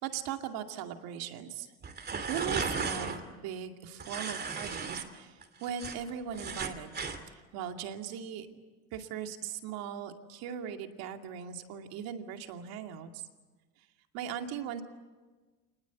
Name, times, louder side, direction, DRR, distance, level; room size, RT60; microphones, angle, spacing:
voice 1, 0.0-1.7 2.1-6.9 7.5-8.5 8.9-13.2 14.1-14.8, right 9 dB, 70° right, 5 dB, 2.5 m, -39 dB
sound 1, 1.8-3.2 4.0-5.0 5.4-7.2, right 5 dB, 25° right, 2.7 m, -35 dB
26.5 x 20.5 x 8.3 m, 1.3 s
cardioid pair, 130°, 37 cm